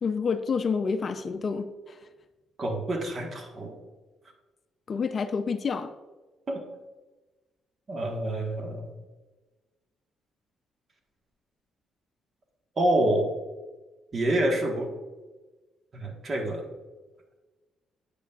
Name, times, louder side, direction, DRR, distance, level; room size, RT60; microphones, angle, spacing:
voice 1, 0.0-2.0 4.9-5.9, left 5 dB, 45° left, 9 dB, 0.5 m, -28 dB
voice 2, 2.6-3.7 6.5-6.6 7.9-8.9 12.8-13.3 14.1-14.9 15.9-16.7, right 1 dB, 40° right, 3 dB, 1.3 m, -27 dB
8.4 x 8.2 x 2.4 m, 1.2 s
cardioid pair, 90°, 0 cm